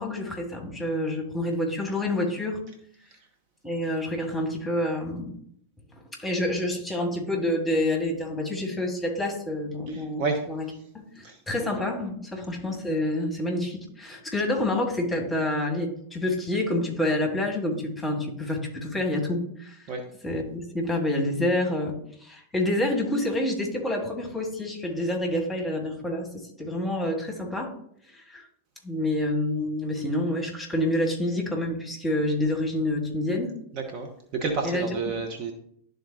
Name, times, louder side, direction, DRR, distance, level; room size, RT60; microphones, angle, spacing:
voice 1, 0.0-2.6 3.6-5.3 6.2-10.7 10.9-19.8 20.2-27.7 28.1-28.5 28.8-33.6 34.6-34.9, left 1 dB, 5° left, 1 dB, 2.0 m, -28 dB
voice 2, 9.9-10.5 11.2-11.4 19.9-20.0 33.7-35.5, right 4 dB, 40° right, 3 dB, 1.0 m, -30 dB
11.5 x 3.9 x 2.9 m, 0.68 s
figure-of-eight pair, 90°, 0 cm